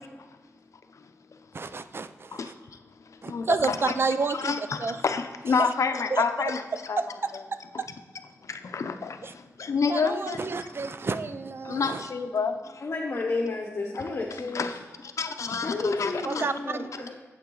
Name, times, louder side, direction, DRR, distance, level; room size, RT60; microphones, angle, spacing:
voice 1, 1.5-2.5 3.2-4.5 4.8-5.0 5.6-5.7 6.1-6.2 7.0-7.1 9.2-9.3 9.9-12.1 16.2-17.1, right 4 dB, 50° right, 11 dB, 0.5 m, -30 dB
voice 2, 3.0-3.9 4.3-7.0 8.4-10.5 11.6-12.8 14.5-16.5, left 5 dB, 75° left, 7 dB, 0.6 m, -29 dB
voice 3, 12.8-14.7 15.6-17.1, left 3 dB, 55° left, -2 dB, 1.0 m, -31 dB
8.6 x 7.5 x 3.9 m, 1.3 s
wide cardioid pair, 95°, 5 cm